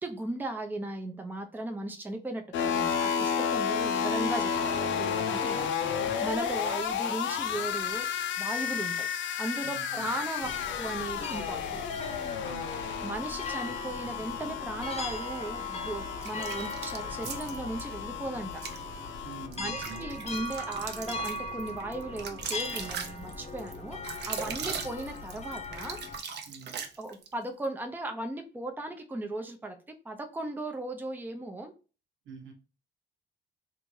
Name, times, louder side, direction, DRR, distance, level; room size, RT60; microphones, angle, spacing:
voice 1, 0.0-8.1 8.4-9.1 9.4-11.8 12.7-18.5 19.6-26.2 27.0-31.7, right 2 dB, 10° right, 5 dB, 0.5 m, -37 dB
sound 1, 2.5-19.5, left 7 dB, 70° left, 0.6 m, -32 dB
voice 2, 9.6-10.1 10.4-10.6 12.4-12.7 19.2-20.1 24.5-24.8 26.5-26.8 32.2-32.5, right 4 dB, 80° right, 4 dB, 1.1 m, -46 dB
sound 2, 10.4-26.2, left 2 dB, 30° left, 0.7 m, -39 dB
sound 3, 16.2-17.8 18.5-18.8 19.3-27.3, right 6 dB, 60° right, 0.6 m, -39 dB
3.3 x 2.6 x 3.1 m, 0.34 s
cardioid pair, 90°, 20 cm